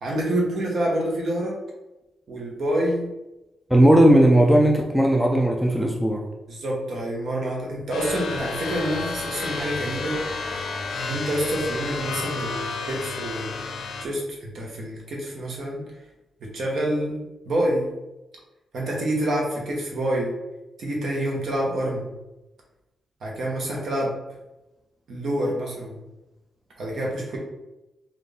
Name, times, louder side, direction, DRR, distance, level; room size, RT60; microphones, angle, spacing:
voice 1, 0.0-1.6 2.3-3.1 6.5-10.2 10.5-10.7 11.0-13.7 14.0-15.8 16.4-17.2 17.4-17.9 18.7-20.4 20.8-22.1 23.2-24.1 25.1-26.1 26.8-27.4, right 1 dB, 50° right, -2 dB, 1.0 m, -27 dB
voice 2, 3.7-6.2, right 1 dB, ahead, 0 dB, 0.3 m, -17 dB
sound 1, 7.9-14.1, left 4 dB, 70° left, 0.5 m, -31 dB
4.0 x 2.5 x 3.4 m, 0.99 s
wide cardioid pair, 160°, 0 cm